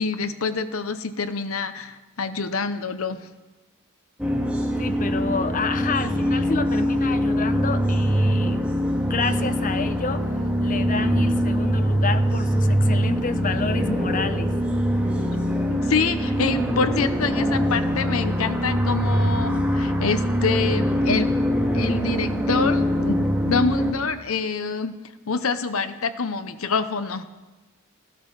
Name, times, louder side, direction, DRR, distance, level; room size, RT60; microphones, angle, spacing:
voice 1, 0.0-3.3 15.7-21.3 21.7-25.0 25.3-27.3, left 4 dB, 70° left, 11 dB, 0.9 m, -26 dB
sound 1, 4.2-23.9, equal, 5° right, 2.0 m, -23 dB
voice 2, 4.8-8.8 9.1-10.3 10.6-14.5, left 4 dB, 40° left, 11 dB, 0.8 m, -29 dB
15.5 x 12.5 x 6.5 m, 1.1 s
head